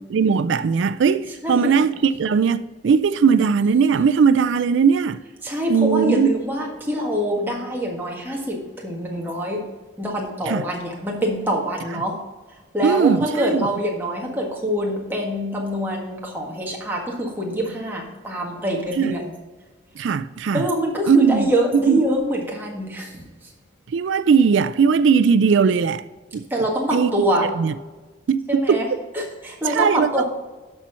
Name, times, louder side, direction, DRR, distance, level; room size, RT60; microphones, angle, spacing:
voice 1, 0.1-5.2 5.7-6.3 10.5-10.6 12.8-13.6 19.0-19.2 20.0-20.6 21.1-21.5 21.9-22.0 23.9-26.0 26.3-26.4 26.9-27.1 27.6-27.7 28.3-28.9 29.7-30.2, right 6 dB, 70° right, 0.4 m, -18 dB
voice 2, 1.4-1.8 5.4-9.6 10.0-12.2 12.7-19.3 20.5-23.1 26.5-27.5 28.5-28.9 29.1-30.2, equal, 10° right, 1.6 m, -25 dB
12.0 x 4.4 x 5.6 m
head